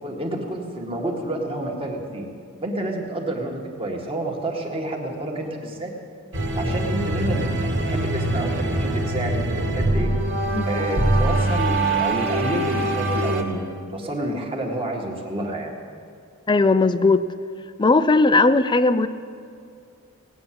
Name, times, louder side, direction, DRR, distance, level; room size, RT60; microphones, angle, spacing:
voice 1, 0.0-2.3 2.6-5.9 6.3-10.1 10.6-13.6 13.9-15.7, right 1 dB, 25° right, 0 dB, 1.9 m, -29 dB
sound 1, 6.3-13.4, right 1 dB, 60° right, 2.1 m, -23 dB
voice 2, 16.5-17.2 17.8-19.1, left 3 dB, 20° left, 12 dB, 0.5 m, -17 dB
18.0 x 9.1 x 7.6 m, 2.4 s
head